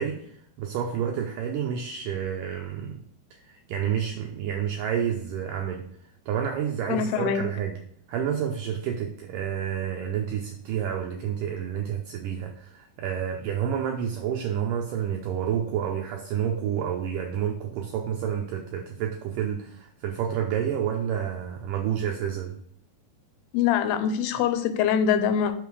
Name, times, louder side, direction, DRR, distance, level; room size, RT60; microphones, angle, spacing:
voice 1, 0.0-3.0 3.3-5.9 6.3-7.8 8.1-22.6, right 8 dB, 85° right, 1.9 m, -29 dB
voice 2, 6.9-7.4 23.5-25.5, left 8 dB, 85° left, 2.7 m, -23 dB
5.8 x 4.9 x 4.7 m
omnidirectional pair, 4.5 m